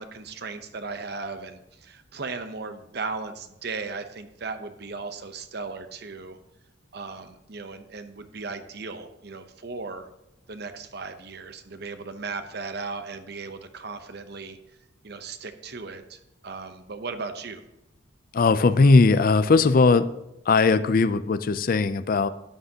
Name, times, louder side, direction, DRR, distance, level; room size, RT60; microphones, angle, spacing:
voice 1, 0.0-6.4 6.9-10.1 10.5-14.6 15.0-17.6, right 4 dB, 55° right, 9 dB, 0.8 m, -36 dB
voice 2, 18.3-20.1 20.5-22.3, left 3 dB, 45° left, 14 dB, 0.4 m, -19 dB
12.5 x 10.5 x 2.9 m, 0.90 s
head